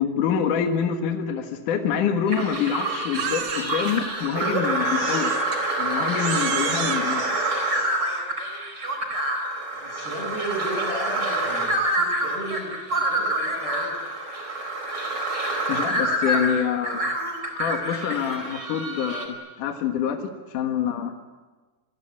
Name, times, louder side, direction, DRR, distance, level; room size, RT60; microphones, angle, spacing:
voice 1, 0.0-5.4 5.8-7.4 15.7-17.0 17.6-21.1, left 8 dB, 60° left, 4 dB, 2.8 m, -26 dB
sound 1, 2.3-19.3, right 1 dB, 25° right, 4.5 m, -27 dB
Crying sobbing, 3.1-4.0 4.9-5.6 6.2-8.3, right 9 dB, 70° right, 3.5 m, -33 dB
voice 2, 9.8-14.0, right 1 dB, 80° left, 2 dB, 8.3 m, -34 dB
29.0 x 21.5 x 8.8 m, 1.3 s
omnidirectional pair, 4.6 m